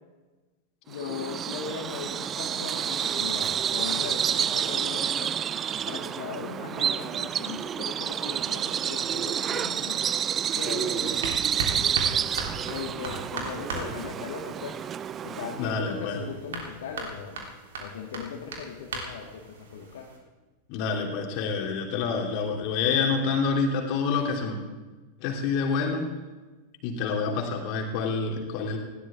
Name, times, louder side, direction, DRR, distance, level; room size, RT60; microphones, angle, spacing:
voice 1, 0.9-5.5 5.9-10.0 10.5-11.4 12.7-14.8 15.2-17.4 17.8-20.1, left 6 dB, 60° left, 0 dB, 1.9 m, -38 dB
Bird vocalization bird call bird song, 0.9-15.7, right 8 dB, 25° right, 0.4 m, -29 dB
sound 1, 10.3-20.2, right 3 dB, 60° right, 3.3 m, -38 dB
voice 2, 15.6-16.2 20.7-24.6 25.2-26.1 26.8-28.8, left 5 dB, 45° left, 2 dB, 3.0 m, -27 dB
19.5 x 16.5 x 3.6 m, 1.2 s
figure-of-eight pair, 90°, 0 cm